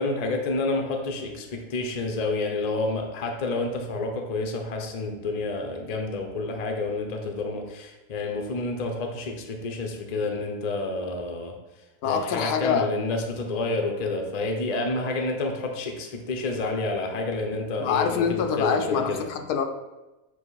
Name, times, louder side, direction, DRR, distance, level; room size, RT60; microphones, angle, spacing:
voice 1, 0.0-11.6 12.0-19.3, left 2 dB, 45° left, 3 dB, 0.5 m, -29 dB
voice 2, 12.0-12.9 17.8-19.6, left 7 dB, 80° left, 5 dB, 1.1 m, -25 dB
7.9 x 3.0 x 3.9 m, 1.1 s
omnidirectional pair, 1.7 m